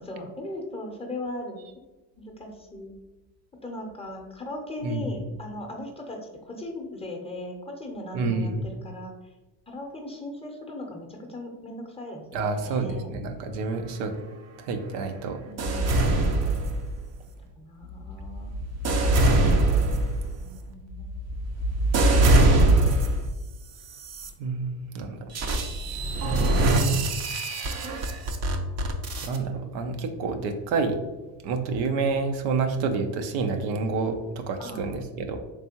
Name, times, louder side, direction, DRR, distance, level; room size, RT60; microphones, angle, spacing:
voice 1, 0.0-1.6 2.2-2.9 3.6-9.1 9.7-12.4 12.6-13.1 15.4-16.4 17.6-18.6 20.4-21.1 34.6-34.8, left 1 dB, 10° left, 1 dB, 0.6 m, -38 dB
voice 2, 4.8-5.2 8.1-8.7 12.3-14.1 14.6-15.4 24.4-25.2 26.3-27.0 29.2-31.0 31.4-35.4, right 4 dB, 80° right, 5 dB, 0.7 m, -28 dB
sound 1, 15.6-17.2 17.8-23.3 23.9-24.3 25.3-29.4, right 2 dB, 35° right, 0.5 m, -23 dB
3.4 x 3.4 x 2.8 m, 1.1 s
supercardioid pair, 100°, 48 cm